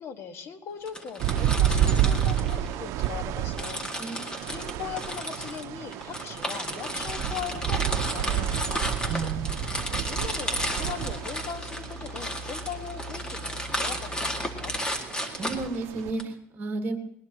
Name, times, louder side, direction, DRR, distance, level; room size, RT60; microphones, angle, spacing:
voice 1, 0.0-4.1 4.5-9.3 10.0-14.7, left 7 dB, 55° left, 8 dB, 1.6 m, -40 dB
sound 1, 0.9-3.1 3.5-16.2, equal, 15° left, 2.0 m, -33 dB
sound 2, 1.2-16.1, right 11 dB, 75° right, 0.6 m, -30 dB
voice 2, 3.7-4.2 9.1-9.7 15.4-17.0, right 3 dB, 40° right, 5 dB, 1.7 m, -33 dB
sound 3, 7.1-14.8, right 1 dB, 35° left, 1.9 m, -43 dB
20.0 x 20.0 x 3.0 m, 0.77 s
cardioid pair, 120°, 5 cm